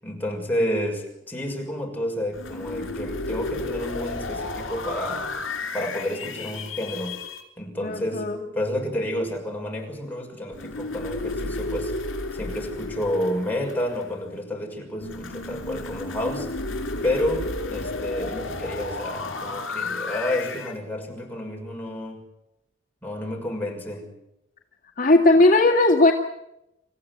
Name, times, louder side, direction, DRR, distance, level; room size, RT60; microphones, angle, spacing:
voice 1, 0.0-5.3 5.7-7.2 7.6-11.9 12.3-16.5 17.0-22.2 23.0-24.1, left 1 dB, 10° left, 0 dB, 6.3 m, -30 dB
sound 1, 2.3-7.4 10.5-14.3 15.0-20.8, left 2 dB, 75° left, 5.0 m, -32 dB
voice 2, 7.8-8.4 25.0-26.1, left 2 dB, 45° left, 0 dB, 2.0 m, -17 dB
28.0 x 15.0 x 9.6 m, 0.87 s
head